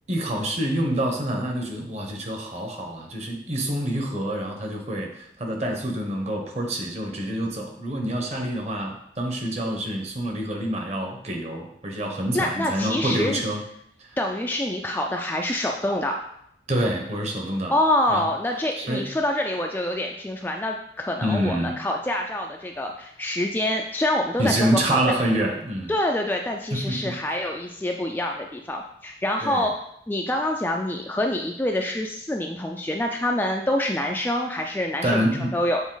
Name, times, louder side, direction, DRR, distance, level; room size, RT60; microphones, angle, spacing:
voice 1, 0.1-13.6 14.0-14.2 16.7-17.8 18.1-18.3 18.8-19.1 21.2-21.8 24.4-25.9 26.7-27.1 29.4-29.7 35.0-35.5, right 1 dB, 35° right, 2 dB, 1.1 m, -27 dB
voice 2, 12.3-13.4 14.2-16.2 17.7-25.0 25.9-29.8 30.1-35.2 35.5-35.8, left 1 dB, 10° left, 1 dB, 0.3 m, -26 dB
7.1 x 4.1 x 3.9 m, 0.72 s
head